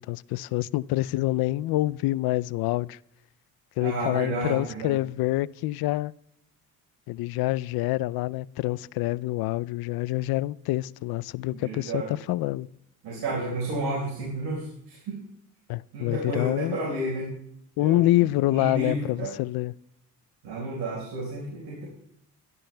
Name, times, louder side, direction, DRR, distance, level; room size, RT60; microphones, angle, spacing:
voice 1, 0.0-3.0 3.8-6.1 7.1-12.7 15.7-16.8 17.8-19.7, left 17 dB, 75° left, 0.5 m, -26 dB
voice 2, 3.8-5.0 11.6-12.2 13.0-15.2 15.9-17.3 17.8-18.2 18.5-19.3 20.4-21.8, right 2 dB, 85° right, 4.7 m, -31 dB
29.5 x 12.5 x 2.2 m
supercardioid pair, 70°, 37 cm